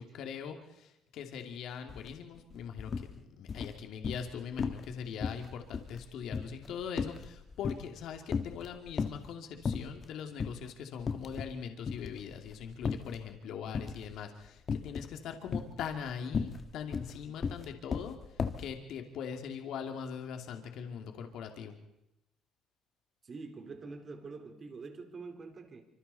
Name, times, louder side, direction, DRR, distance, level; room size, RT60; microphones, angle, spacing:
voice 1, 0.0-21.8, left 7 dB, 70° left, 4 dB, 2.5 m, -41 dB
sound 1, 1.9-2.1 2.4-3.1 3.5-4.3 4.6-4.9 5.2-8.0 8.3-9.3 9.7-10.1 10.4-10.6 11.0-11.6 11.9-13.2 13.7-14.2 14.7-15.1 15.5-18.7, left 5 dB, 40° left, 1.6 m, -35 dB
voice 2, 23.2-25.9, right 4 dB, 40° right, 5 dB, 3.9 m, -45 dB
26.0 x 26.0 x 4.2 m, 0.87 s
cardioid pair, 100°, 0 cm